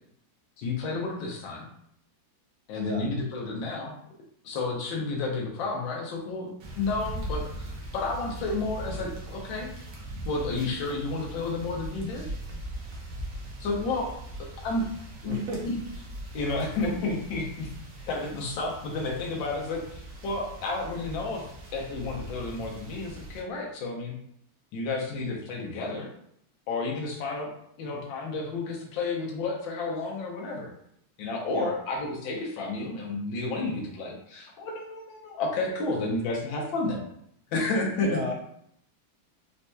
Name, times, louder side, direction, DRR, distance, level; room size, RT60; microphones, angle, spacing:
voice 1, 0.6-1.7 2.7-3.9 4.4-6.5 6.8-9.7 10.3-12.2 13.6-14.1 14.6-14.9 15.2-15.8 16.3-17.7 18.0-24.2 24.7-26.1 26.7-27.5 27.8-30.7 31.2-37.0 37.5-38.3, left 3 dB, 75° left, -1 dB, 1.4 m, -31 dB
sound 1, 6.6-23.4, right 1 dB, 60° right, 0.9 m, -40 dB
voice 2, 15.3-15.6 31.5-31.7 38.0-38.3, right 1 dB, 85° right, -1 dB, 1.5 m, -33 dB
4.2 x 2.7 x 2.2 m, 0.70 s
omnidirectional pair, 2.2 m